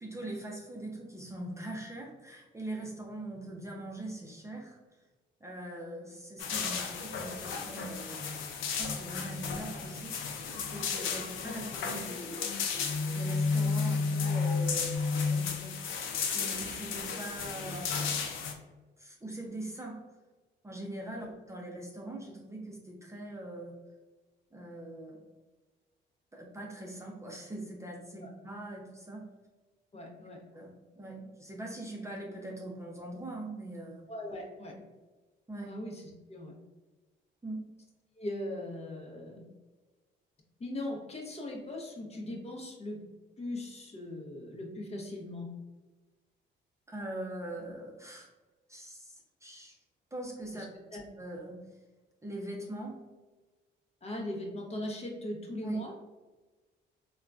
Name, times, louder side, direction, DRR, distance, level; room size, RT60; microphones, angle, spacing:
voice 1, 0.0-4.8 5.4-8.2 8.7-12.5 13.1-16.0 16.3-18.4 19.0-20.0 20.6-23.8 24.5-25.2 26.3-29.3 30.5-34.1 35.5-35.8 37.4-37.6 46.9-48.3 48.7-49.8 50.1-50.6 51.2-51.8 52.2-53.0 55.6-55.8, right 1 dB, 15° right, -1 dB, 0.5 m, -42 dB
sound 1, 6.4-18.5, left 5 dB, 80° left, 0.5 m, -33 dB
voice 2, 29.9-30.4 34.1-34.7 35.7-36.5 38.2-39.4 40.6-43.0 43.4-45.5 50.5-50.7 50.9-51.0 54.0-55.9, left 1 dB, 30° left, 0 dB, 0.7 m, -39 dB
3.6 x 2.2 x 2.4 m, 1.2 s
cardioid pair, 90°, 20 cm